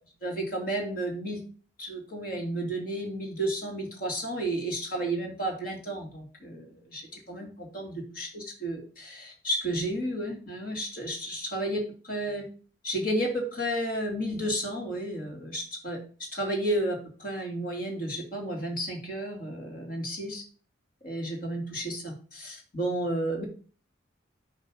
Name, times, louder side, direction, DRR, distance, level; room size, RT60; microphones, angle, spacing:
voice 1, 0.2-1.4 1.8-12.5 12.8-20.4 21.0-23.4, right 1 dB, 45° left, 1 dB, 2.4 m, -32 dB
9.8 x 3.3 x 6.3 m, 0.41 s
head